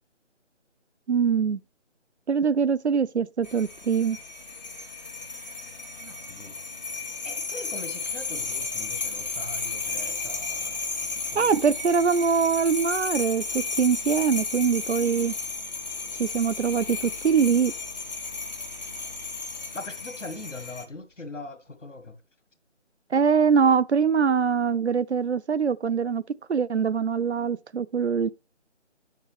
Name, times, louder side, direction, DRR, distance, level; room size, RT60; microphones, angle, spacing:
voice 1, 1.1-1.6 2.3-4.2 11.3-15.3 16.2-17.7 23.1-26.2 26.5-28.3, right 6 dB, 65° right, 0.5 m, -23 dB
sound 1, 3.4-20.8, left 4 dB, 35° left, 1.0 m, -34 dB
voice 2, 6.0-6.6 7.2-10.8 11.1-11.5 19.7-22.2, left 2 dB, 75° left, 2.0 m, -41 dB
9.6 x 6.6 x 3.3 m
figure-of-eight pair, 160°, 37 cm